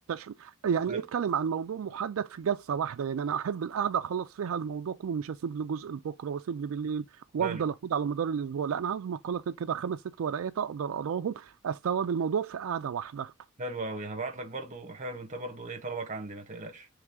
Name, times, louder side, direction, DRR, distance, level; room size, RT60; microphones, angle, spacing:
voice 1, 0.1-13.3, right 7 dB, 75° right, 0.3 m, -31 dB
voice 2, 13.6-16.9, right 3 dB, 35° right, 0.9 m, -37 dB
4.7 x 3.2 x 3.6 m
head